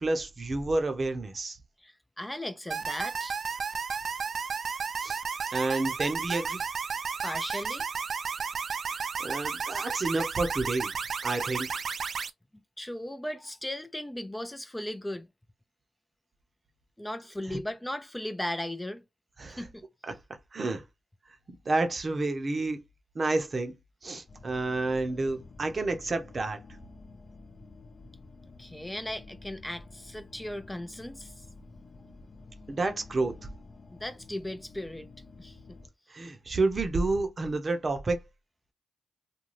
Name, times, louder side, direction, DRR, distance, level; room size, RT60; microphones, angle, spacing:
voice 1, 0.0-1.6 5.0-5.2 5.5-6.6 8.9-10.9 11.2-11.7 19.4-19.6 20.1-20.2 20.5-20.8 21.6-22.8 23.1-23.8 24.0-26.6 32.7-33.4 36.1-38.3, right 2 dB, 45° right, 0.7 m, -29 dB
voice 2, 1.8-3.4 7.2-7.9 12.8-15.3 17.0-19.0 19.5-19.8 28.6-31.4 33.9-35.1 35.4-35.8, left 1 dB, 15° left, 0.5 m, -37 dB
sound 1, 2.7-12.3, right 5 dB, 60° right, 0.3 m, -33 dB
sound 2, 24.3-35.9, left 3 dB, 50° left, 0.7 m, -50 dB
2.5 x 2.2 x 3.2 m
supercardioid pair, 45°, 0 cm